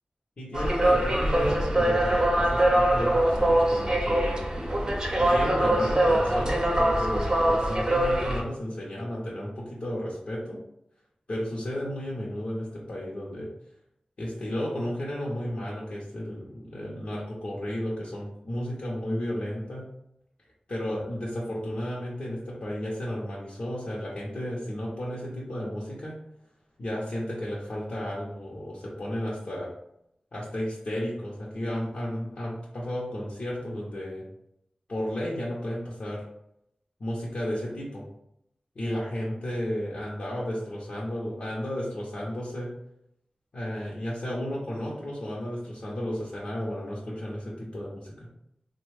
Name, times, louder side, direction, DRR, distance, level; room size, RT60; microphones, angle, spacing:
voice 1, 0.4-4.4 5.1-10.6 11.3-13.5 14.2-19.8 20.7-26.1 26.8-29.7 30.3-34.2 34.9-36.2 37.0-38.0 38.7-42.7 43.5-48.3, equal, 65° left, -6 dB, 0.7 m, -33 dB
sound 1, 0.5-8.4, right 1 dB, 30° right, 0.7 m, -23 dB
3.3 x 2.2 x 3.3 m, 0.77 s
wide cardioid pair, 95°, 2 cm